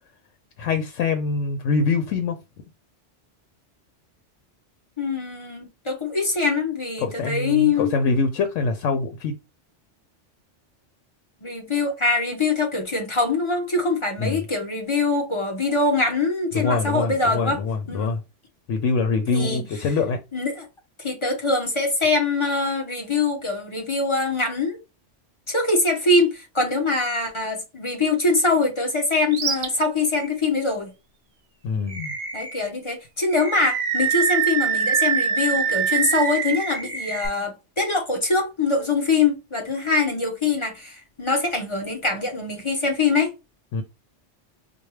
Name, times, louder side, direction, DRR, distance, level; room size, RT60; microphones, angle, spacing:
voice 1, 0.6-2.4 7.0-9.3 14.2-14.4 16.5-18.2 18.7-20.2 31.6-32.1 43.7-43.8, left 4 dB, 85° left, 0.9 m, -24 dB
voice 2, 5.0-7.9 11.4-17.6 17.9-18.1 19.3-19.7 20.3-20.7 21.0-24.8 25.5-30.9 32.3-43.3, left 3 dB, 25° left, 1.0 m, -23 dB
Animal, 29.3-29.7 30.1-30.3 31.9-32.6 33.3-37.3, right 7 dB, 55° right, 0.8 m, -24 dB
4.4 x 2.3 x 3.1 m
omnidirectional pair, 1.2 m